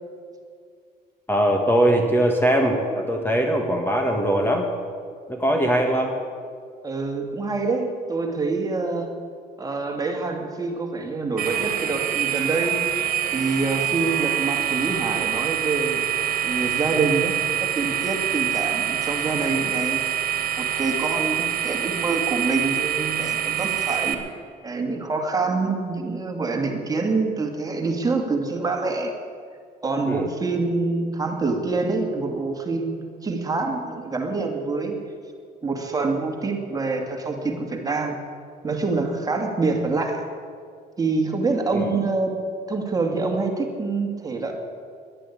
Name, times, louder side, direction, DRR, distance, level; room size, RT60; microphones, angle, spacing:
voice 1, 1.3-4.7 5.3-6.1 30.1-30.3 41.7-41.9, right 1 dB, 10° left, 3 dB, 1.6 m, -21 dB
voice 2, 6.8-9.1 9.6-12.8 13.3-16.0 16.4-17.3 17.6-20.0 20.6-24.2 24.6-29.1 29.8-35.0 35.6-38.2 38.6-40.3 41.0-42.4 42.7-44.5, right 3 dB, 20° right, 2 dB, 2.3 m, -26 dB
sound 1, 11.4-24.1, right 10 dB, 55° right, 1.9 m, -25 dB
11.0 x 11.0 x 9.9 m, 2.1 s
cardioid pair, 110°, 17 cm